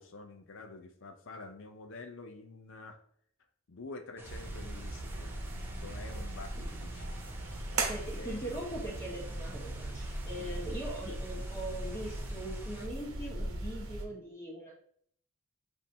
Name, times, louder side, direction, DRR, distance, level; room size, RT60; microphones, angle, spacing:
voice 1, 0.0-3.0 3.7-7.2 8.2-8.4 10.4-10.6, left 3 dB, 60° left, 5 dB, 0.5 m, -48 dB
sound 1, 4.2-12.9, right 1 dB, 10° right, 0.5 m, -50 dB
sound 2, 4.2-14.0, right 2 dB, 75° right, 0.9 m, -39 dB
voice 2, 7.9-14.8, right 1 dB, 15° left, -4 dB, 1.4 m, -41 dB
7.2 x 2.7 x 2.7 m, 0.63 s
head